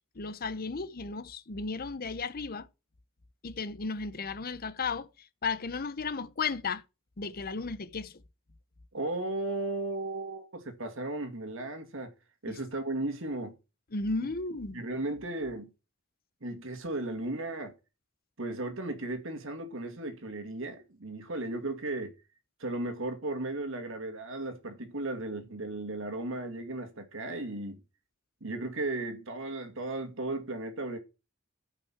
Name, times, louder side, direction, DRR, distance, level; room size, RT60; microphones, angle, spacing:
voice 1, 0.2-2.7 3.4-5.1 5.4-6.8 7.2-8.1 12.5-12.6 13.9-14.8, left 4 dB, 45° left, 0.8 m, -34 dB
voice 2, 8.9-12.1 12.4-13.5 14.7-15.7 16.4-17.7 18.4-22.1 22.6-27.8 28.4-31.0, right 2 dB, 65° right, 2.2 m, -35 dB
12.5 x 5.8 x 5.9 m
head